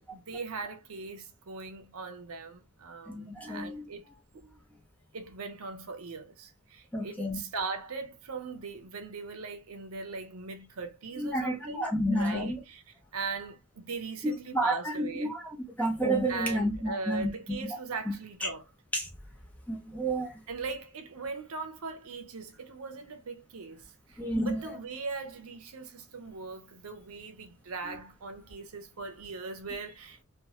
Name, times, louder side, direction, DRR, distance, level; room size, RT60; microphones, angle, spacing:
voice 1, 0.0-4.0 4.3-4.4 5.1-12.8 13.1-15.3 16.3-18.6 20.5-30.2, right 4 dB, 75° right, 0.6 m, -40 dB
voice 2, 3.1-3.8 6.9-7.4 11.2-12.6 14.2-17.3 18.4-18.5 18.9-19.1 19.7-20.4 24.2-24.6, right 1 dB, 5° left, 0.7 m, -30 dB
2.9 x 2.2 x 2.8 m
head